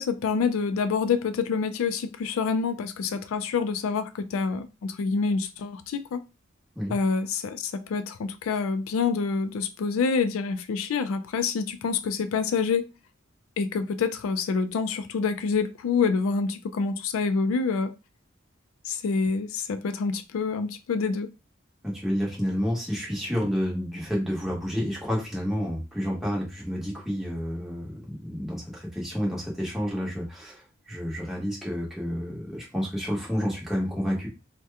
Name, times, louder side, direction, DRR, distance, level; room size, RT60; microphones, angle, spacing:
voice 1, 0.0-6.2 6.9-12.9 13.6-17.9 18.9-21.3, left 5 dB, 80° left, 0.3 m, -27 dB
voice 2, 21.8-34.3, equal, ahead, 1.1 m, -30 dB
2.8 x 2.2 x 3.4 m
head